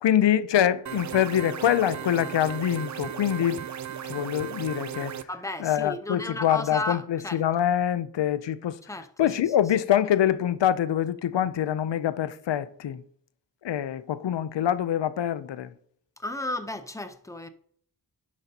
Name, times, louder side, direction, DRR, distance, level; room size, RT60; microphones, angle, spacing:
voice 1, 0.0-3.6 4.1-5.2 5.6-8.8 9.2-13.0 13.6-15.7, left 10 dB, 90° left, 0.6 m, -25 dB
sound 1, 0.9-5.2, right 9 dB, 45° right, 0.4 m, -36 dB
voice 2, 5.3-7.4 8.9-9.5 16.2-17.5, left 2 dB, 10° left, 0.7 m, -34 dB
11.0 x 7.5 x 2.8 m
wide cardioid pair, 80°, 42 cm